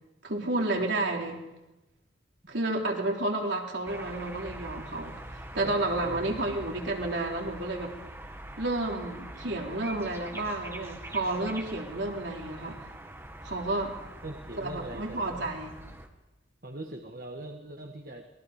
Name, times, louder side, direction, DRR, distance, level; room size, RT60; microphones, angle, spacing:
voice 1, 0.2-1.4 2.5-7.9 8.6-12.8 13.4-13.9 14.6-15.8, right 2 dB, 75° right, 0 dB, 3.5 m, -31 dB
sound 1, 3.9-16.1, right 1 dB, 15° right, 1.9 m, -44 dB
voice 2, 5.6-6.2 14.2-15.5 16.6-18.3, right 1 dB, 50° right, 3 dB, 1.8 m, -41 dB
27.0 x 21.5 x 5.1 m, 0.96 s
head